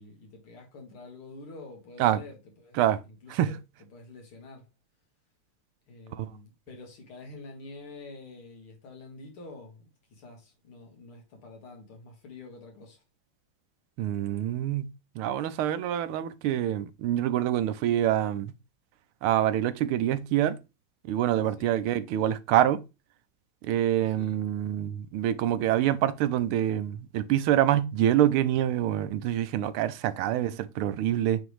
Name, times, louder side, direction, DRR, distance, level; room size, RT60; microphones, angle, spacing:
voice 1, 0.0-2.8 3.0-3.6 3.9-4.7 5.9-13.0 21.6-21.8 24.2-24.4 30.2-30.5, left 3 dB, 80° left, 2.6 m, -47 dB
voice 2, 14.0-14.9 15.1-18.5 19.2-20.6 21.0-22.8 23.6-31.4, right 12 dB, 80° right, 1.5 m, -26 dB
8.9 x 3.4 x 3.2 m
omnidirectional pair, 2.4 m